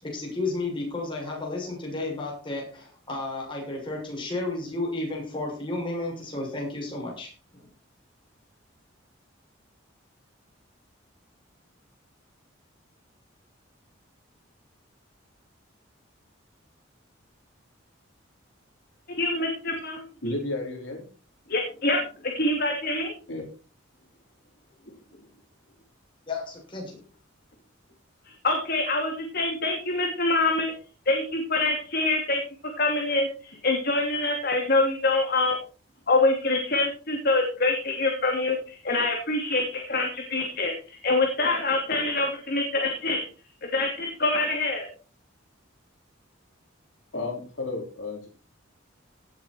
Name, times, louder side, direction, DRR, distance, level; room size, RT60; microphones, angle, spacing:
voice 1, 0.0-7.3 26.3-27.0, left 2 dB, 25° left, -1 dB, 6.7 m, -32 dB
voice 2, 19.2-20.0 21.5-23.1 28.4-30.7 31.1-32.4 32.8-35.6 36.1-43.2 43.6-44.9, left 2 dB, 50° left, 1 dB, 2.9 m, -25 dB
voice 3, 20.2-21.1 23.3-23.4 47.1-48.3, left 2 dB, 70° left, 1 dB, 3.8 m, -32 dB
18.0 x 7.9 x 4.5 m, 0.38 s
head